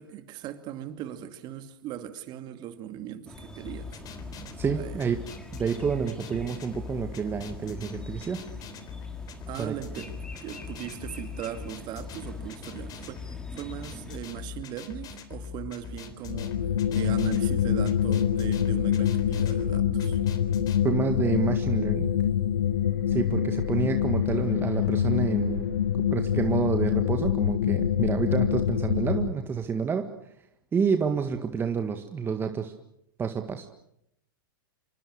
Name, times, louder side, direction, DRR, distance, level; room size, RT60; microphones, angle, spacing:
voice 1, 0.0-4.0 4.8-5.0 9.5-10.1 10.4-16.5 16.9-20.2, right 11 dB, 40° right, 2.5 m, -39 dB
sound 1, 3.3-14.2, left 1 dB, 5° left, 3.8 m, -45 dB
sound 2, 3.6-20.8, left 6 dB, 30° left, 3.5 m, -41 dB
voice 2, 4.6-5.2 5.5-8.4 9.6-9.7 20.8-22.1 23.1-25.7 26.1-30.1 30.7-32.7 33.2-33.7, right 6 dB, 20° right, 1.7 m, -28 dB
sound 3, 16.3-29.3, left 9 dB, 70° left, 1.2 m, -25 dB
27.0 x 24.0 x 6.6 m
hypercardioid pair, 100°, 12 cm